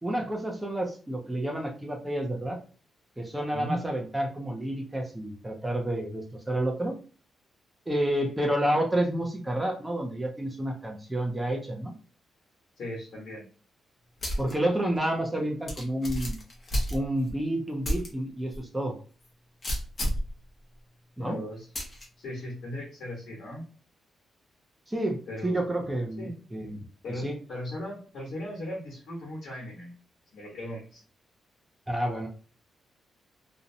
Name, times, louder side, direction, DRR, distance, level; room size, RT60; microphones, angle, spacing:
voice 1, 0.0-2.6 3.2-7.0 7.9-11.9 14.4-16.4 16.9-19.0 21.2-21.4 24.9-26.8 27.1-27.4 31.9-32.3, right 1 dB, 10° right, 1 dB, 0.4 m, -30 dB
voice 2, 12.8-13.4 21.2-21.7 22.2-23.6 25.3-25.7 26.2-26.3 27.0-29.9 30.3-31.0, left 1 dB, 65° left, -3 dB, 1.0 m, -37 dB
sound 1, 14.2-14.5 15.0-15.1 15.7-17.3 17.8-18.1 18.5-18.6 19.6-20.3 21.7-22.0, equal, 30° left, 0.7 m, -30 dB
2.5 x 2.0 x 2.6 m, 0.39 s
wide cardioid pair, 165°, 0 cm